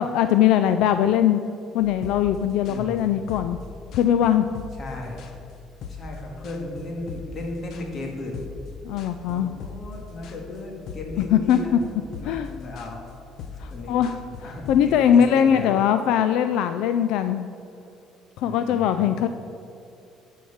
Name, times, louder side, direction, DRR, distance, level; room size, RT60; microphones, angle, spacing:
voice 1, 0.0-1.4 1.7-3.6 3.9-4.5 8.8-9.5 11.2-11.6 12.2-12.6 13.6-17.5 18.4-19.3, left 9 dB, 80° left, 9 dB, 0.3 m, -21 dB
sound 1, 1.8-14.8, left 5 dB, 60° left, 0.8 m, -41 dB
voice 2, 2.7-3.2 4.8-5.3 5.9-8.5 9.3-13.1 13.7-14.0 14.4-15.7 18.4-19.2, left 2 dB, 40° left, 0 dB, 2.0 m, -35 dB
10.5 x 4.6 x 7.2 m, 2.7 s
cardioid pair, 125°, 0 cm